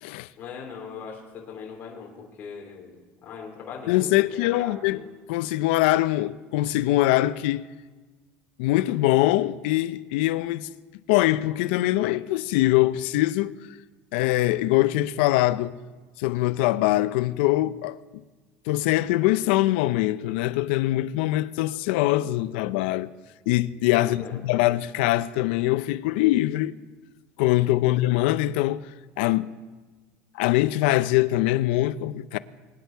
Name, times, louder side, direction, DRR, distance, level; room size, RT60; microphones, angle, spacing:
voice 1, 0.4-5.1 24.0-24.4 27.8-28.0, left 6 dB, 35° left, 3.3 m, -40 dB
voice 2, 3.9-5.0 5.3-7.7 8.6-10.7 11.1-13.5 14.1-15.8 16.2-18.0 18.7-23.1 23.5-26.7 27.4-28.9 29.2-29.5 30.3-32.4, left 16 dB, 85° left, 0.6 m, -23 dB
24.5 x 9.8 x 4.6 m
cardioid pair, 155°, 6 cm